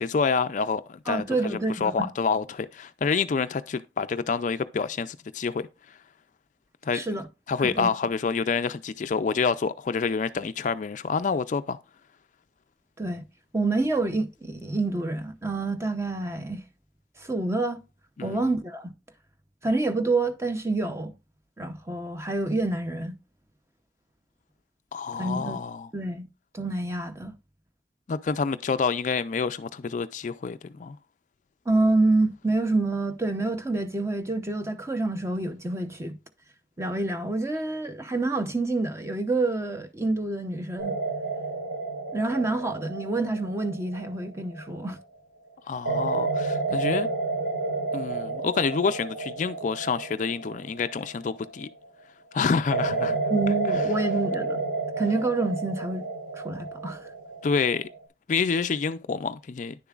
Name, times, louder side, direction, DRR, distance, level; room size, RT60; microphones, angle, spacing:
voice 1, 0.0-5.7 6.8-7.0 7.5-11.8 18.2-18.4 24.9-25.9 28.1-31.0 45.7-47.1 47.9-51.7 52.3-53.2 57.4-57.9 58.3-59.7, left 5 dB, 40° left, 0.4 m, -27 dB
voice 2, 1.1-2.1 6.9-7.3 7.6-7.9 13.0-13.2 13.5-16.7 17.2-17.8 18.2-18.9 19.6-21.1 21.6-23.2 25.2-25.6 25.9-26.3 26.5-27.3 31.7-36.2 36.8-41.0 42.1-45.0 46.7-46.8 53.3-54.6 55.0-56.0 56.3-57.1, right 2 dB, 15° right, 0.7 m, -27 dB
sound 1, 40.8-45.0 45.9-51.8 52.7-58.0, right 3 dB, 60° right, 4.0 m, -31 dB
9.9 x 6.9 x 2.4 m
head